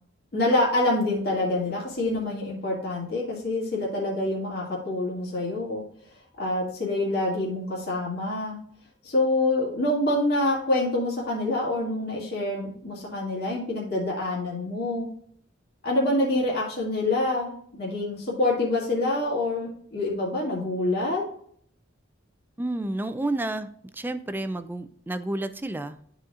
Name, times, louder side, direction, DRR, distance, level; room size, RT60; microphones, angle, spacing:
voice 1, 0.3-5.8 6.4-8.6 9.0-15.1 15.8-21.2, left 2 dB, 50° left, -5 dB, 2.0 m, -26 dB
voice 2, 22.6-23.7 23.9-26.0, right 2 dB, 10° right, 11 dB, 0.4 m, -30 dB
12.5 x 4.3 x 2.5 m, 0.64 s
head